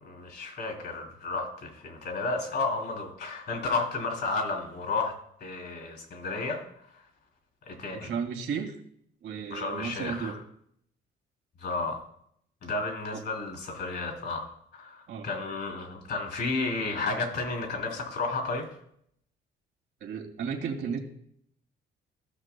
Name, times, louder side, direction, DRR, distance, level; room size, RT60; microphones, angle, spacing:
voice 1, 0.0-5.1 5.4-6.6 7.7-8.1 9.5-10.4 11.6-12.0 12.6-18.7, left 3 dB, 60° left, 2 dB, 3.1 m, -32 dB
voice 2, 7.9-8.8 9.2-10.4 13.1-13.2 15.1-15.3 20.0-21.0, right 6 dB, 80° right, 2 dB, 2.0 m, -34 dB
15.5 x 6.4 x 2.3 m, 0.67 s
cardioid pair, 110°, 20 cm